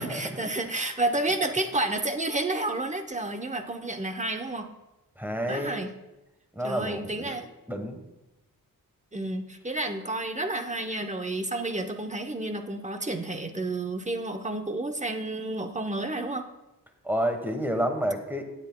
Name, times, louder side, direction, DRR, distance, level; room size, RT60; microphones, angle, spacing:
voice 1, 0.0-4.7 5.5-5.9 6.6-7.5 9.1-16.5, right 2 dB, 20° right, 6 dB, 0.7 m, -30 dB
voice 2, 5.2-5.8 6.5-7.4 7.7-8.0 17.0-18.5, equal, 5° right, 6 dB, 1.2 m, -29 dB
17.5 x 8.1 x 2.2 m, 0.99 s
wide cardioid pair, 90°, 35 cm